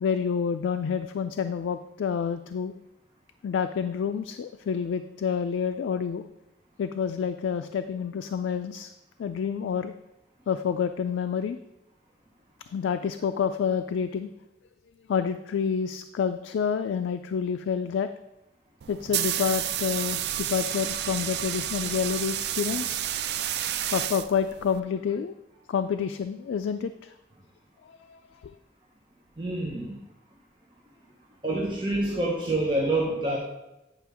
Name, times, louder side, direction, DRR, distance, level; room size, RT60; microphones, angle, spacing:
voice 1, 0.0-2.7 3.4-6.3 6.8-8.9 9.2-9.9 10.5-11.6 12.7-14.3 15.1-18.1 18.9-23.0 23.9-25.3 25.7-27.1 28.1-28.2 28.4-28.5, left 7 dB, 90° left, 8 dB, 0.3 m, -28 dB
sound 1, 18.8-24.8, right 11 dB, 60° right, 0.4 m, -30 dB
voice 2, 29.4-30.0 31.4-33.4, right 2 dB, 25° right, -3 dB, 0.9 m, -27 dB
9.2 x 5.1 x 3.5 m, 0.95 s
head